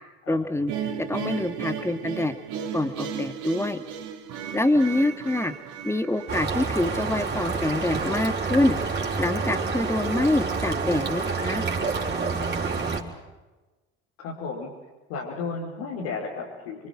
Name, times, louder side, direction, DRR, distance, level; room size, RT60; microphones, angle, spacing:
voice 1, 0.3-0.7 1.1-2.3 2.7-3.8 4.5-5.5 5.8-8.8 9.2-11.6, left 2 dB, 10° left, 9 dB, 2.3 m, -25 dB
sound 1, 0.7-7.8, right 8 dB, 70° right, 3.6 m, -35 dB
sound 2, 6.3-13.0, right 4 dB, 35° right, 5.5 m, -28 dB
voice 2, 14.2-14.7 15.1-16.9, left 4 dB, 80° left, -5 dB, 5.7 m, -33 dB
29.0 x 24.0 x 6.2 m, 1.2 s
hypercardioid pair, 70°, 31 cm